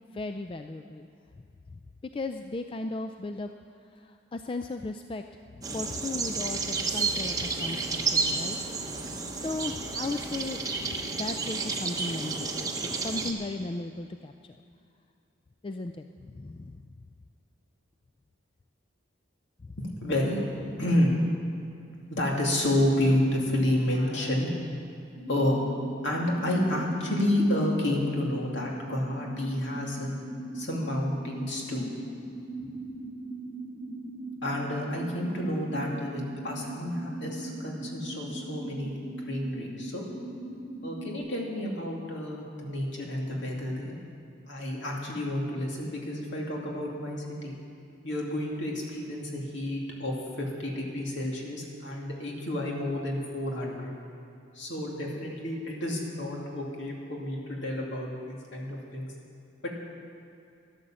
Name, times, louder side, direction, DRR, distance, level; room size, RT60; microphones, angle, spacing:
voice 1, 0.1-1.1 1.7-1.8 2.1-3.5 3.9-5.2 5.7-8.6 9.3-14.6 15.6-16.8, left 2 dB, 25° left, 6 dB, 0.3 m, -36 dB
sound 1, 5.6-13.3, right 4 dB, 20° right, 0.9 m, -31 dB
voice 2, 19.8-21.2 22.1-24.5 25.3-25.6 26.0-30.1 30.5-31.9 32.6-32.7 34.4-40.1 40.8-44.0 44.5-47.6 48.0-53.9 54.5-59.1 59.6-59.7, left 1 dB, 65° left, -2 dB, 2.5 m, -30 dB
sound 2, 25.1-41.2, right 1 dB, 85° left, 3.7 m, -40 dB
12.0 x 11.5 x 7.5 m, 2.6 s
head